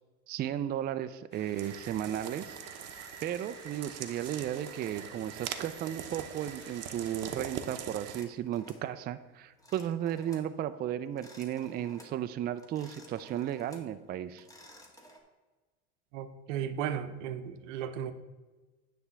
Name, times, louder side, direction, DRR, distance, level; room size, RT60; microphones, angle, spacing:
voice 1, 0.3-2.6 3.2-14.5, right 11 dB, 25° right, 10 dB, 0.4 m, -34 dB
sound 1, 1.3-7.5, left 2 dB, 30° left, 2.0 m, -55 dB
sound 2, 1.6-8.2, right 9 dB, 45° right, 0.8 m, -42 dB
sound 3, 8.1-8.9 9.6-10.5 11.1-12.2 12.6-13.9 14.3-15.2, equal, 10° left, 1.5 m, -54 dB
voice 2, 16.1-18.1, right 9 dB, 75° right, 10 dB, 0.8 m, -35 dB
9.5 x 3.5 x 6.9 m, 1.3 s
supercardioid pair, 110°, 37 cm